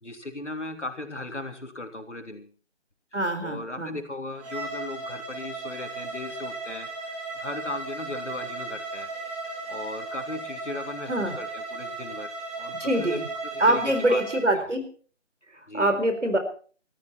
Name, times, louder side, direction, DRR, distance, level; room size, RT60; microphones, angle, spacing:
voice 1, 0.0-2.5 3.4-9.1 9.7-13.2 13.5-14.2 14.5-14.7 15.7-16.0, left 2 dB, 75° left, 5 dB, 3.2 m, -37 dB
voice 2, 3.1-4.0 11.1-11.4 12.8-13.3 13.6-14.8 15.5-16.4, right 1 dB, 80° right, 7 dB, 4.4 m, -24 dB
Bowed string instrument, 4.4-14.4, right 2 dB, 5° right, 3.4 m, -36 dB
20.0 x 14.0 x 4.4 m, 0.42 s
figure-of-eight pair, 155°, 35 cm